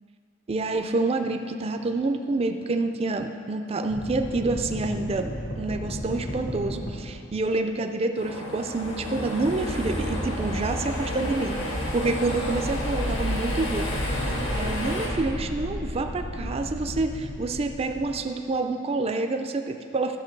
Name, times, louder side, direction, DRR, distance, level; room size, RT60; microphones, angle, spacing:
voice 1, 0.5-14.0 14.5-20.2, right 3 dB, 30° right, 6 dB, 0.4 m, -28 dB
sound 1, 3.9-7.6 8.6-18.2, left 1 dB, 50° left, 1.0 m, -33 dB
sound 2, 8.2-15.1, equal, 70° left, 1.7 m, -33 dB
13.0 x 6.0 x 4.5 m, 2.3 s
head